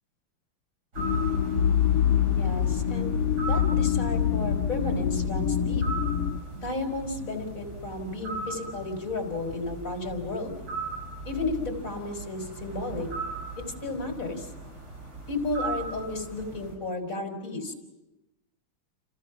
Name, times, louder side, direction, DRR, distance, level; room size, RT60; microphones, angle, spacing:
sound 1, 0.9-16.7, right 3 dB, 45° right, 7.5 m, -38 dB
sound 2, 1.0-6.4, left 8 dB, 90° left, 2.1 m, -25 dB
voice 1, 2.3-3.2 3.5-5.8 6.6-10.6 11.2-13.1 13.8-14.5 15.3-17.7, left 2 dB, 40° left, 4 dB, 4.4 m, -33 dB
29.5 x 28.5 x 6.0 m, 1.0 s
omnidirectional pair, 2.3 m